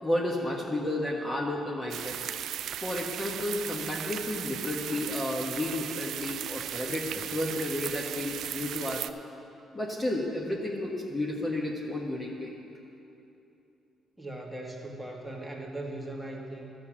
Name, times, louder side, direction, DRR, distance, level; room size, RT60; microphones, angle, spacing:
voice 1, 0.0-2.2 2.8-9.1 9.7-12.5, left 1 dB, 25° left, -2 dB, 1.3 m, -32 dB
sound 1, 1.9-9.1, right 10 dB, 75° right, 0.3 m, -36 dB
voice 2, 14.2-16.6, right 1 dB, 5° right, -1 dB, 1.7 m, -39 dB
12.0 x 6.5 x 7.4 m, 2.8 s
cardioid pair, 90°, 0 cm